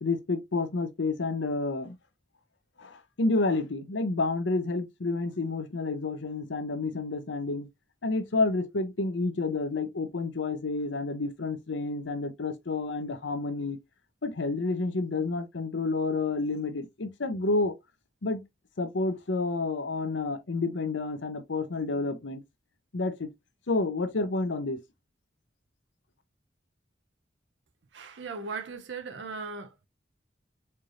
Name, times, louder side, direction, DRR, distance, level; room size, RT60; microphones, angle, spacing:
voice 1, 0.0-2.0 2.8-7.7 8.0-13.8 14.2-17.7 18.2-18.4 18.8-22.4 22.9-23.3 23.7-24.8, left 3 dB, 80° left, 0.7 m, -29 dB
voice 2, 27.9-29.9, right 4 dB, 75° right, 0.6 m, -38 dB
4.5 x 3.2 x 2.4 m
head